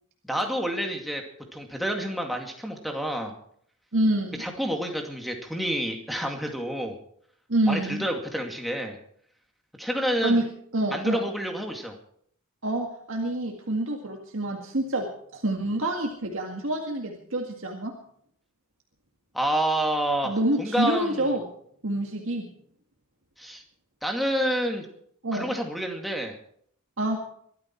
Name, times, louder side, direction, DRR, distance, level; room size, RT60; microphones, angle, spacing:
voice 1, 0.2-1.2 1.5-3.3 4.4-7.0 7.7-9.0 9.8-10.4 10.9-12.0 19.3-21.3 23.4-23.6 24.0-24.9 25.3-26.4, equal, ahead, 2 dB, 2.3 m, -28 dB
voice 2, 3.9-4.5 7.5-8.1 10.2-10.4 10.7-11.2 12.6-17.9 20.2-21.5 21.8-22.5 25.2-25.5 27.0-27.2, right 1 dB, 60° right, 1 dB, 2.0 m, -27 dB
23.0 x 12.5 x 4.6 m, 0.66 s
head